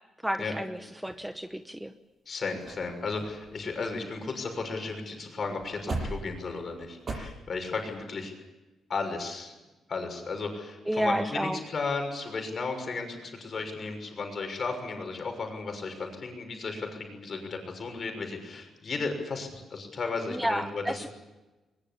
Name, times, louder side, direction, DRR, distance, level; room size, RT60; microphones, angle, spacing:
voice 1, 0.2-1.9 10.9-11.6 20.3-21.1, right 1 dB, 5° right, 9 dB, 0.9 m, -31 dB
sound 1, 0.9-1.7 2.3-2.4 2.6-2.9 3.2-4.7 5.0-5.1 5.5-7.2, right 2 dB, 40° right, 7.7 m, -39 dB
voice 2, 2.3-8.3 8.9-9.5 9.9-21.1, left 4 dB, 40° left, 4 dB, 6.3 m, -34 dB
22.0 x 21.5 x 8.6 m, 1.1 s
cardioid pair, 120°, 0 cm